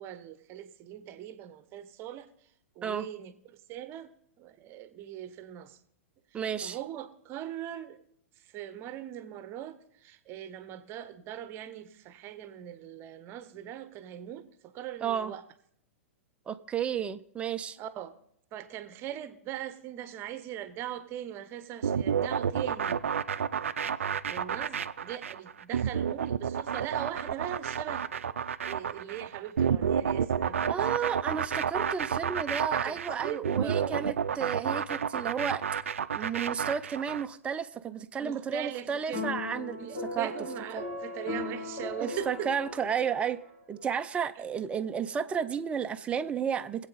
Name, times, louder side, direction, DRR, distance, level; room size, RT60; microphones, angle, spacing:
voice 1, 0.0-2.3 2.8-4.1 4.4-5.8 6.3-8.0 8.4-15.4 17.8-18.1 18.5-23.0 24.3-28.1 28.6-31.0 32.7-34.0 38.2-39.2 39.8-42.5, right 11 dB, 30° right, 0.9 m, -40 dB
voice 2, 6.3-6.8 15.0-15.3 16.5-17.8 30.7-35.6 36.1-39.8 40.1-40.3 40.7-40.8 42.0-43.4 43.7-46.9, right 7 dB, 15° right, 0.5 m, -32 dB
sound 1, 21.8-37.3, right 7 dB, 65° right, 0.5 m, -30 dB
sound 2, 39.1-43.6, left 3 dB, 65° left, 5.4 m, -38 dB
21.5 x 8.1 x 4.0 m
figure-of-eight pair, 100°, 7 cm